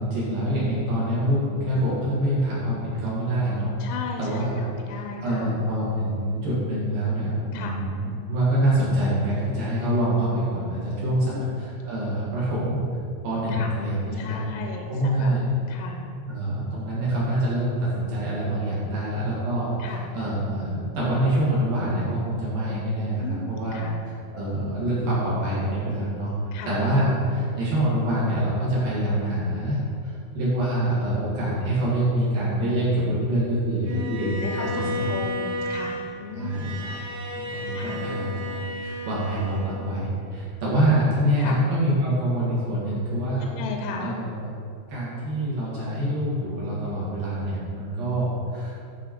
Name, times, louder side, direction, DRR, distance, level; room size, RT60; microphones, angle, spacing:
voice 1, 0.0-3.7 4.2-4.7 5.2-12.9 13.2-14.4 14.9-15.4 16.3-23.2 23.5-23.8 24.3-26.3 26.7-29.8 30.0-35.0 36.3-37.0 37.3-43.5 44.0-44.5 44.9-48.7, right 1 dB, 60° right, -8 dB, 2.8 m, -25 dB
voice 2, 3.8-5.6 7.5-7.8 11.2-11.6 13.5-13.7 14.2-15.3 15.7-16.0 19.8-20.1 23.2-24.0 26.5-26.8 33.8-36.9 37.4-38.0 41.4-41.6 43.4-44.2, left 5 dB, 85° left, 2 dB, 3.0 m, -36 dB
Bowed string instrument, 33.8-40.1, left 1 dB, 75° right, 3.6 m, -33 dB
11.5 x 4.5 x 4.3 m, 2.5 s
omnidirectional pair, 5.7 m